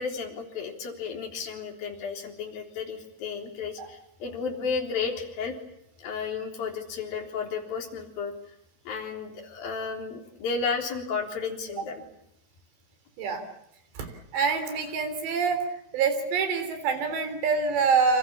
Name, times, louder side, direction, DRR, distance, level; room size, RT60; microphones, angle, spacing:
voice 1, 0.0-5.6 6.0-8.3 8.9-12.0, left 5 dB, 60° left, 2 dB, 5.4 m, -33 dB
voice 2, 14.3-15.7 15.9-18.2, right 5 dB, 85° right, 9 dB, 5.9 m, -25 dB
29.0 x 27.0 x 7.3 m, 0.76 s
omnidirectional pair, 4.8 m